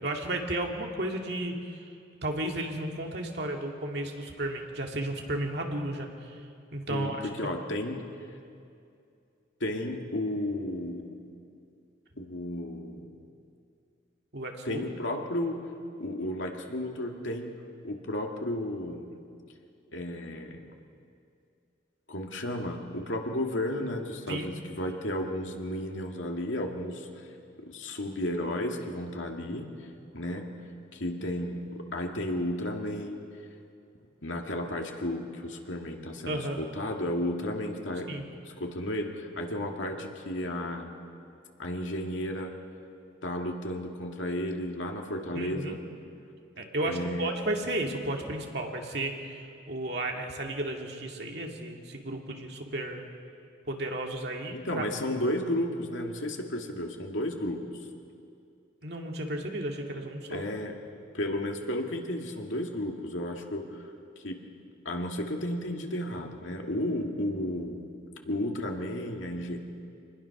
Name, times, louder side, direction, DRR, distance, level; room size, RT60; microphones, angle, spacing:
voice 1, 0.0-1.9 2.2-6.4 6.7-7.2 14.3-14.8 24.3-24.5 36.3-36.6 38.1-38.3 45.3-45.8 46.6-53.0 53.7-54.8 58.8-60.4, right 1 dB, 60° right, 1 dB, 2.2 m, -33 dB
voice 2, 6.9-8.0 9.6-11.1 12.2-13.0 14.6-15.6 16.0-19.2 19.9-20.6 22.1-27.3 27.6-29.7 30.1-30.5 30.9-33.2 34.2-40.9 41.6-42.5 43.2-45.8 46.8-47.3 54.5-57.6 60.3-60.7 61.1-63.9 64.2-64.4 64.8-67.8 68.2-69.6, left 1 dB, 90° left, 2 dB, 2.2 m, -33 dB
25.5 x 20.5 x 6.0 m, 2.5 s
head